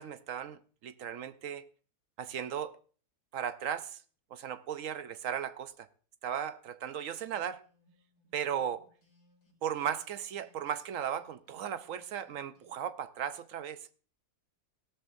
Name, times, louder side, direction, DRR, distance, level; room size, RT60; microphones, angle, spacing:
voice 1, 0.0-1.6 2.2-2.8 3.3-4.0 4.3-5.9 6.2-7.6 8.3-8.9 9.6-14.0, right 9 dB, 65° right, 0.9 m, -36 dB
sound 1, 7.1-10.8 11.1-12.7, left 2 dB, 80° left, 4.8 m, -69 dB
16.5 x 12.5 x 2.6 m
omnidirectional pair, 1.7 m